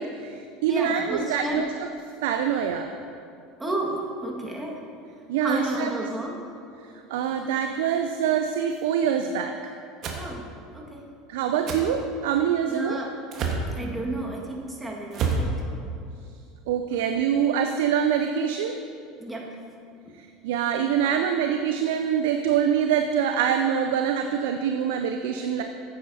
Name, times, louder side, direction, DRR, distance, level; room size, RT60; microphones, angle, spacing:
voice 1, 0.0-1.7 2.2-2.9 5.3-5.9 7.1-9.5 11.3-13.0 16.7-18.8 20.2-25.6, right 8 dB, 65° right, 5 dB, 0.5 m, -25 dB
voice 2, 0.7-1.7 3.6-4.8 5.4-6.5 10.2-11.1 12.7-13.1 13.8-15.6 19.2-19.6, right 1 dB, 10° right, -2 dB, 1.8 m, -32 dB
sound 1, 10.0-10.2 11.7-11.8 13.3-13.7 15.1-15.5, right 4 dB, 45° right, 1.4 m, -27 dB
14.5 x 8.4 x 2.8 m, 2.5 s
figure-of-eight pair, 75°, 0 cm